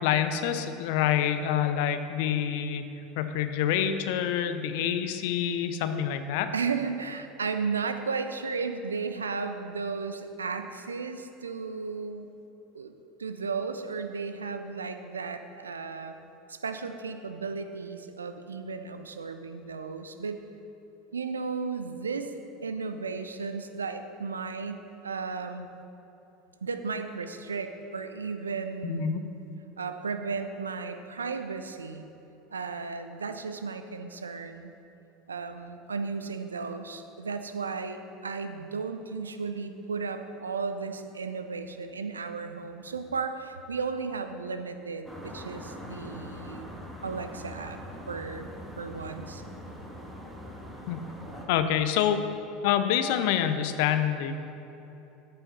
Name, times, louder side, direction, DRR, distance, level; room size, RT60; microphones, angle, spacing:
voice 1, 0.0-2.8 3.2-6.5 28.8-29.2 50.9-51.0 51.5-52.2 52.6-54.3, left 9 dB, 60° left, 9 dB, 0.6 m, -26 dB
voice 2, 6.5-12.3 12.7-12.9 13.2-16.2 16.5-20.4 21.1-22.3 22.6-25.7 26.6-29.3 29.8-32.1 32.5-34.7 35.3-46.7 47.0-47.8 48.1-48.5 48.8-49.4, right 5 dB, 80° right, 8 dB, 0.5 m, -34 dB
sound 1, 45.0-51.5, equal, 5° right, 1.8 m, -42 dB
13.5 x 5.7 x 4.1 m, 3.0 s
figure-of-eight pair, 75°, 0 cm